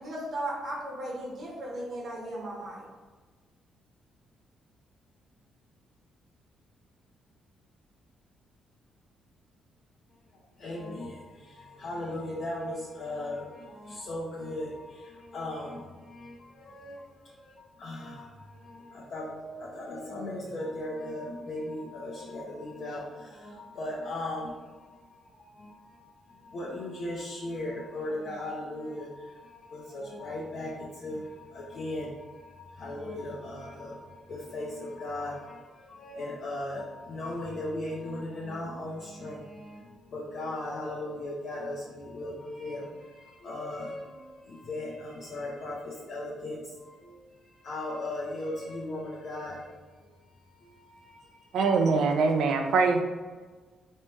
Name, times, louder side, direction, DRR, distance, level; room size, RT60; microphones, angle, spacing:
voice 1, 0.0-2.9, right 1 dB, 55° right, -4 dB, 1.2 m, -36 dB
voice 2, 10.6-50.1 50.3-51.8, left 1 dB, 60° left, -6 dB, 0.8 m, -38 dB
voice 3, 51.5-53.0, right 4 dB, 75° right, 4 dB, 0.5 m, -23 dB
3.2 x 3.2 x 3.1 m, 1.3 s
cardioid pair, 90°, 0 cm